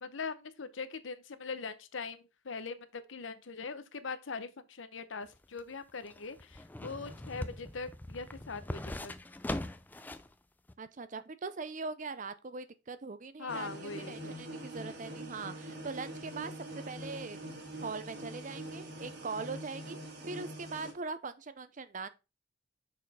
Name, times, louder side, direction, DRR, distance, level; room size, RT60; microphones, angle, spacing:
voice 1, 0.0-9.1 13.4-14.3, left 4 dB, 75° left, 0.8 m, -41 dB
sound 1, 5.2-10.3 10.7-10.8, left 1 dB, 10° left, 0.3 m, -41 dB
voice 2, 10.8-17.4 17.8-20.0 20.2-22.1, right 4 dB, 40° right, 0.5 m, -41 dB
sound 2, 13.5-20.9, right 1 dB, 60° right, 1.6 m, -44 dB
6.5 x 4.1 x 4.1 m
head